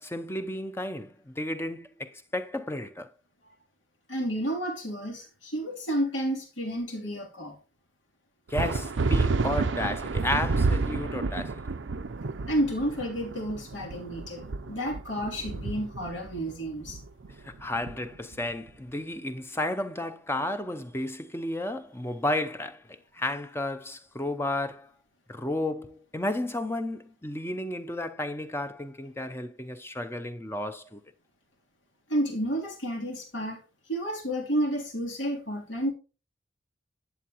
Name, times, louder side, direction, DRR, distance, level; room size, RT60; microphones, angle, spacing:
voice 1, 0.0-3.1 8.5-11.6 17.4-24.9 25.3-31.0, left 1 dB, 15° left, 0.6 m, -32 dB
voice 2, 4.1-7.5 12.5-17.0 32.1-33.6 33.9-35.9, equal, 85° left, 3.1 m, -31 dB
sound 1, 8.5-18.5, right 3 dB, 80° right, 0.6 m, -30 dB
11.0 x 8.4 x 3.0 m
head